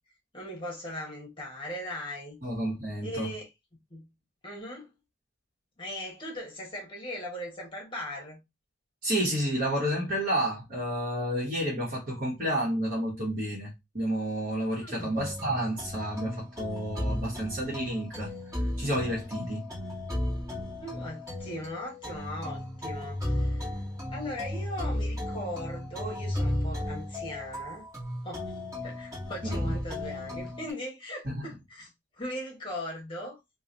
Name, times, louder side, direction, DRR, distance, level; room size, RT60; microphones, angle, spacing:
voice 1, 0.3-2.4 3.0-3.5 3.9-4.1 4.4-4.9 5.8-8.4 14.8-15.2 20.8-23.8 24.1-27.8 28.2-28.5 28.8-31.9 32.2-33.4, equal, 25° left, 1.1 m, -39 dB
voice 2, 2.4-3.3 9.0-18.3 18.8-19.7 29.4-29.7 31.2-31.4, right 1 dB, 45° right, 1.2 m, -30 dB
sound 1, 15.1-30.7, left 1 dB, 15° right, 1.5 m, -34 dB
3.1 x 2.3 x 3.8 m
head